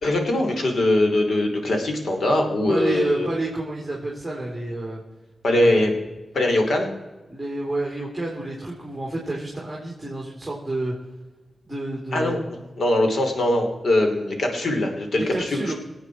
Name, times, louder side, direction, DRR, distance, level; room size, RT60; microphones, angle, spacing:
voice 1, 0.0-3.3 5.4-5.9 6.3-6.9 12.1-12.4 12.8-15.6, left 1 dB, 65° left, 4 dB, 2.9 m, -21 dB
voice 2, 2.7-5.0 5.6-5.8 7.3-10.9 11.6-12.4 15.1-15.7, right 2 dB, 5° right, -3 dB, 3.3 m, -29 dB
25.0 x 8.9 x 4.6 m, 1.1 s
wide cardioid pair, 130°, 0 cm